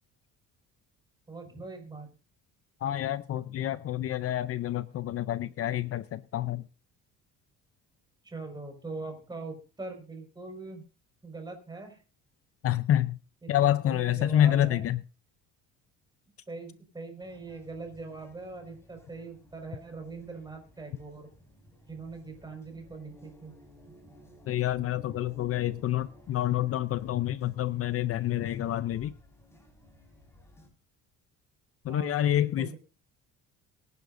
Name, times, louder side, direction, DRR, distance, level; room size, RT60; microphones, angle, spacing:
voice 1, 1.3-2.1 8.2-10.8 11.2-12.0 13.4-14.9 16.5-21.3 21.9-23.5 23.8-24.1 31.9-32.8, right 3 dB, 15° right, 4 dB, 5.6 m, -42 dB
voice 2, 2.8-6.6 12.6-13.2 13.5-15.0 24.5-29.1 31.8-32.7, left 12 dB, 50° left, 14 dB, 0.6 m, -28 dB
sound 1, 17.2-30.7, left 1 dB, 10° left, 5.1 m, -55 dB
23.5 x 10.5 x 2.7 m, 0.35 s
cardioid pair, 135°, 31 cm